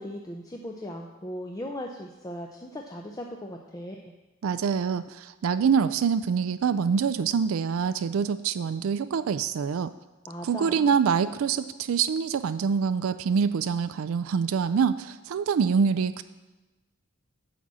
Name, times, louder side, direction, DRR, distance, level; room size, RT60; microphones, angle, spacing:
voice 1, 0.0-4.1 10.3-10.9, equal, 15° left, 1 dB, 0.6 m, -38 dB
voice 2, 4.4-9.9 10.4-16.2, right 6 dB, 75° right, 13 dB, 0.4 m, -25 dB
10.5 x 4.2 x 7.4 m, 1.1 s
head